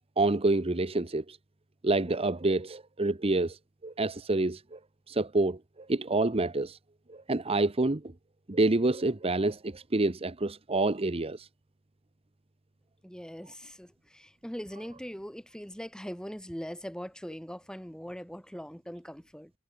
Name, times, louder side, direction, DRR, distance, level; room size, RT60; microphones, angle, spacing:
voice 1, 0.2-1.4 1.8-3.6 3.8-4.8 5.1-5.6 5.9-6.8 7.3-8.0 8.5-11.5, right 2 dB, 30° right, 0.9 m, -27 dB
voice 2, 13.0-19.5, equal, 5° left, 2.9 m, -41 dB
head